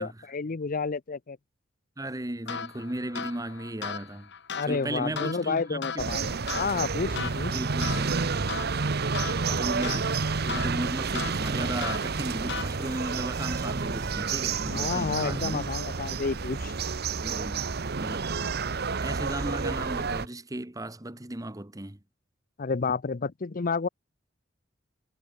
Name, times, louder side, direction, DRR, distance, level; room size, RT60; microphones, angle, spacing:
voice 1, 0.0-1.4 4.5-7.5 14.6-16.7 22.6-23.9, left 4 dB, 45° left, 0.6 m, -30 dB
voice 2, 2.0-4.3 4.7-6.1 7.5-8.5 9.5-15.6 17.2-17.6 18.0-18.3 19.0-22.0, right 1 dB, 20° right, 1.3 m, -35 dB
sound 1, 2.5-13.1, left 6 dB, 60° left, 1.7 m, -38 dB
sound 2, 6.0-20.3, right 4 dB, 55° right, 0.9 m, -30 dB
head